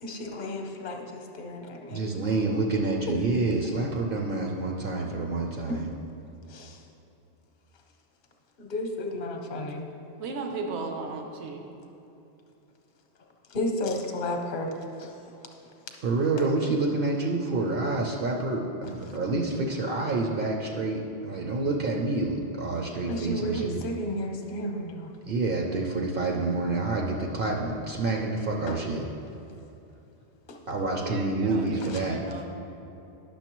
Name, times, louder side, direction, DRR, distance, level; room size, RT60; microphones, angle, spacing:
voice 1, 0.0-2.0 6.5-6.8 8.6-9.9 13.5-15.2 23.1-25.1 28.7-28.8 30.5-30.6 31.9-32.0, left 1 dB, 55° left, 3 dB, 0.9 m, -33 dB
voice 2, 1.9-5.9 16.0-23.8 25.3-29.0 30.7-32.2, right 3 dB, 60° right, 0 dB, 0.7 m, -28 dB
voice 3, 10.2-11.6 31.0-31.6 32.0-32.4, right 4 dB, 80° right, 3 dB, 1.0 m, -35 dB
10.0 x 6.4 x 3.0 m, 2.9 s
omnidirectional pair, 1.1 m